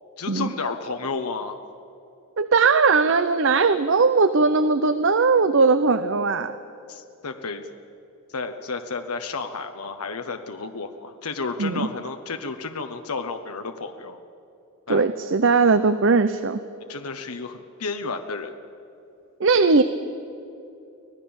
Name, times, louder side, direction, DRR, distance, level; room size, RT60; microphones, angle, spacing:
voice 1, 0.2-1.6 6.9-7.7 8.3-14.2 14.9-15.0 16.9-18.5, left 4 dB, 85° left, 6 dB, 1.1 m, -32 dB
voice 2, 2.4-6.5 11.6-11.9 14.9-16.6 19.4-19.8, right 4 dB, 60° right, 12 dB, 0.7 m, -19 dB
25.0 x 17.5 x 7.2 m, 2.8 s
head